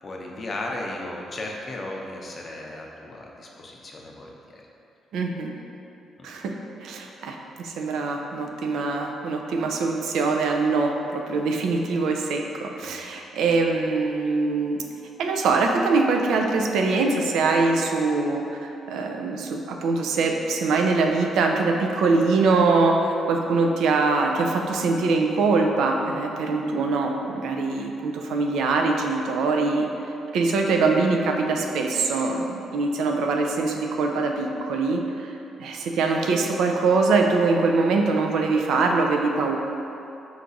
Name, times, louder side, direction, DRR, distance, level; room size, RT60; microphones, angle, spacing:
voice 1, 0.0-4.6 6.2-6.3 12.8-12.9, left 2 dB, 40° left, -1 dB, 0.6 m, -35 dB
voice 2, 5.1-5.5 6.2-6.5 6.8-14.8 15.2-29.9 30.3-35.3 35.6-39.6, right 3 dB, 80° right, 2 dB, 0.4 m, -23 dB
4.5 x 2.5 x 3.9 m, 2.7 s
cardioid pair, 90°, 0 cm